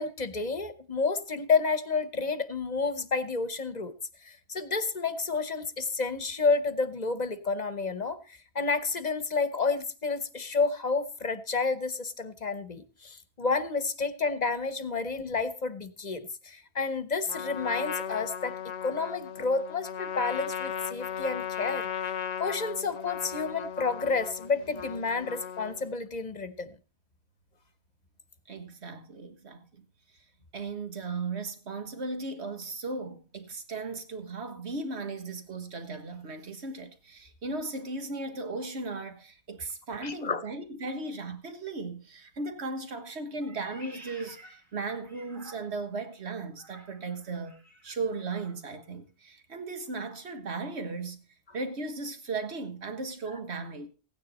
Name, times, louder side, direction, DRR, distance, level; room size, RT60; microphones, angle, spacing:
voice 1, 0.0-3.9 4.2-18.6 18.8-22.1 22.4-26.7 40.0-40.4, left 4 dB, 40° left, 1.0 m, -30 dB
Trumpet, 17.3-26.0, left 9 dB, 80° left, 1.1 m, -37 dB
voice 2, 28.5-29.8 30.5-47.5 47.8-51.2 51.5-53.9, right 3 dB, 75° right, 1.8 m, -36 dB
Meow, 43.4-46.0 46.5-48.6, right 1 dB, 45° right, 2.9 m, -52 dB
16.0 x 9.6 x 4.1 m
omnidirectional pair, 1.1 m